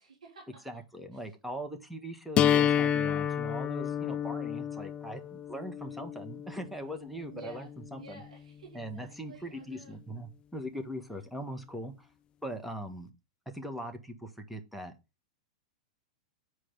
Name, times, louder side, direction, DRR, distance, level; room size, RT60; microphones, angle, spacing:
voice 1, 0.0-0.8 1.1-1.3 7.3-7.7 8.0-10.0, right 3 dB, 85° right, 3.3 m, -52 dB
voice 2, 0.6-8.2 8.7-11.9 12.4-13.1 13.5-14.9, equal, ahead, 1.6 m, -40 dB
sound 1, 2.4-8.3, left 9 dB, 25° left, 0.4 m, -30 dB
8.5 x 4.8 x 5.6 m
hypercardioid pair, 110°, 4 cm